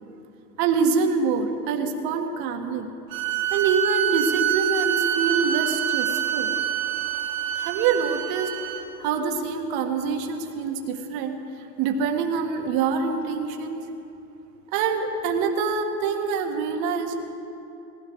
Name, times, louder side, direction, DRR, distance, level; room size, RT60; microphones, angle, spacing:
voice 1, 0.6-2.9 3.5-6.5 7.6-8.5 9.0-11.4 11.8-13.8 14.7-17.2, right 5 dB, 45° right, 5 dB, 1.8 m, -25 dB
sound 1, 3.1-8.8, right 11 dB, 75° right, 2.5 m, -26 dB
18.0 x 16.0 x 4.8 m, 2.9 s
hypercardioid pair, 105°, 47 cm